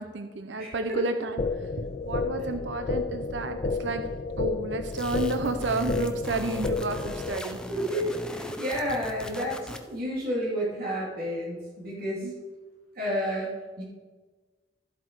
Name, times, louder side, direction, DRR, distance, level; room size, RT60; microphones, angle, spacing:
voice 1, 0.0-7.6 12.2-12.3, right 2 dB, 80° right, 8 dB, 0.7 m, -31 dB
voice 2, 0.6-1.0 7.7-12.3 12.9-13.8, equal, 55° right, -4 dB, 2.9 m, -31 dB
sound 1, 1.4-7.4, left 3 dB, 40° left, 0.4 m, -31 dB
sound 2, 4.9-10.0, left 1 dB, 5° left, 0.7 m, -38 dB
13.0 x 7.8 x 4.7 m, 1.3 s
head